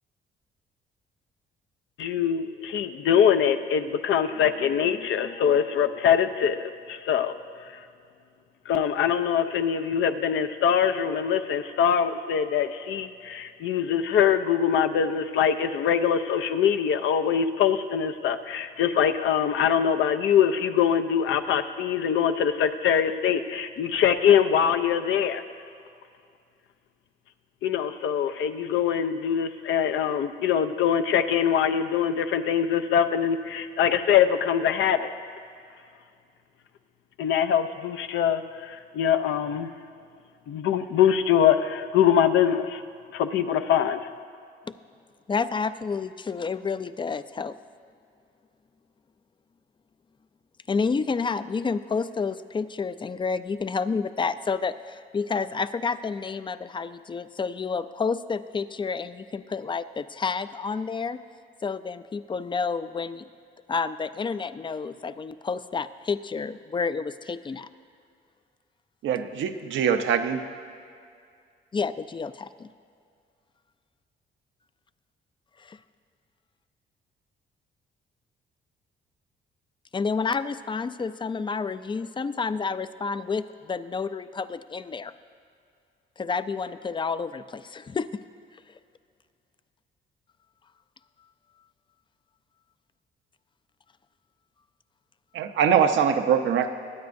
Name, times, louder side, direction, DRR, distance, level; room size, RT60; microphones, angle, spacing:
voice 1, 2.0-7.3 8.7-25.4 27.6-35.1 37.2-39.7 40.5-42.8 43.1-44.0, left 8 dB, 75° left, 9 dB, 0.6 m, -23 dB
voice 2, 45.3-47.6 50.7-61.2 61.6-63.3 63.7-67.7 71.7-72.7 75.6-75.8 79.9-85.1 86.2-88.2 88.5-88.8, left 5 dB, 25° left, 13 dB, 0.4 m, -30 dB
voice 3, 69.0-70.4 95.3-96.7, right 7 dB, 75° right, 7 dB, 0.7 m, -23 dB
22.0 x 9.3 x 2.6 m, 2.3 s
cardioid pair, 90°, 20 cm